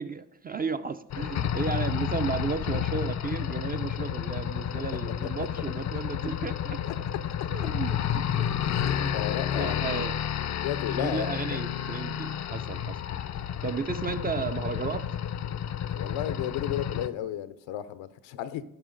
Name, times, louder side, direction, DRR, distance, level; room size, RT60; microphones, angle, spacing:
voice 1, 0.0-6.8 7.5-8.5 8.8-10.2 11.0-13.0 13.6-15.1, right 5 dB, 25° right, 11 dB, 0.3 m, -34 dB
sound 1, 1.1-17.1, left 9 dB, 40° left, 0.4 m, -31 dB
voice 2, 9.1-10.1 10.6-11.6 15.9-18.6, left 11 dB, 85° left, 14 dB, 0.7 m, -34 dB
12.5 x 5.4 x 3.8 m, 0.84 s
supercardioid pair, 65°, 44 cm